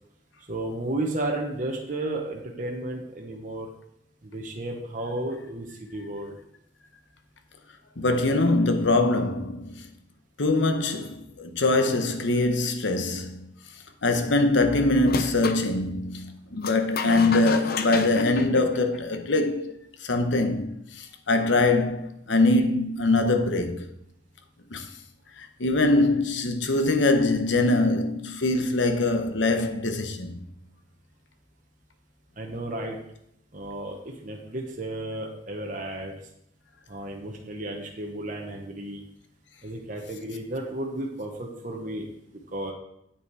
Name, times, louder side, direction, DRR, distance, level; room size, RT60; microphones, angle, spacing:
voice 1, 0.5-3.7 4.2-6.4 32.4-33.0 33.5-36.1 36.9-39.0 39.6-42.1 42.5-42.7, right 1 dB, 40° right, 1.0 m, -33 dB
voice 2, 8.0-9.9 10.4-13.5 14.0-19.7 20.0-23.9 24.7-24.9 25.4-30.4, left 2 dB, 75° left, 0.9 m, -23 dB
sound 1, 15.0-15.6 16.6-19.3, left 4 dB, 50° left, 0.6 m, -32 dB
8.5 x 5.9 x 4.7 m
head